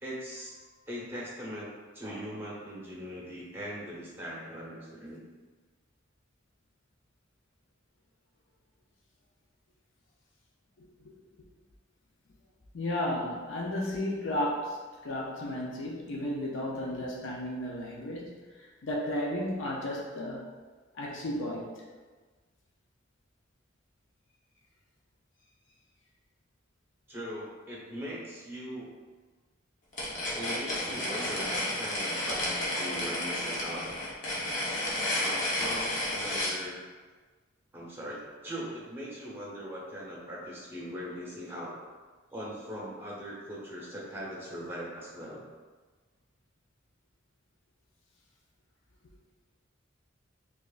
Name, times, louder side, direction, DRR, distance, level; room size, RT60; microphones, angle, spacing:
voice 1, 0.0-0.6 0.9-1.7 1.9-5.2 27.1-28.9 30.3-33.9 35.2-36.8 37.7-41.7 42.3-45.4, equal, 10° right, -6 dB, 0.8 m, -40 dB
voice 2, 10.8-11.5 12.7-20.5 20.9-21.8, left 1 dB, 70° left, -2 dB, 0.5 m, -34 dB
sound 1, 29.9-36.6, left 1 dB, 40° left, 0.9 m, -31 dB
5.0 x 2.4 x 2.4 m, 1.4 s
head